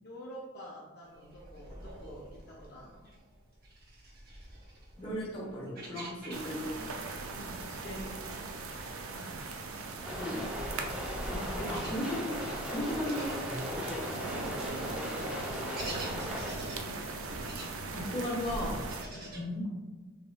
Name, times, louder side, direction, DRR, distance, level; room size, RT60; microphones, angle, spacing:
voice 1, 0.0-3.1 7.3-7.7 9.1-9.4 11.6-11.9 15.0-16.5 19.1-19.4, equal, 50° left, -5 dB, 0.6 m, -47 dB
sound 1, 1.1-6.9 7.1-13.9 14.3-19.4, right 1 dB, 45° right, 0.8 m, -47 dB
voice 2, 5.0-6.9 7.8-8.0 10.1-10.4 11.3-12.4 12.7-14.2 17.9-18.8 19.3-19.6, left 1 dB, 25° left, -4 dB, 1.2 m, -36 dB
sound 2, 6.3-19.0, right 3 dB, 70° right, 0.5 m, -40 dB
sound 3, 10.0-16.5, left 1 dB, 5° right, 0.5 m, -39 dB
5.2 x 3.4 x 2.2 m, 1.3 s
head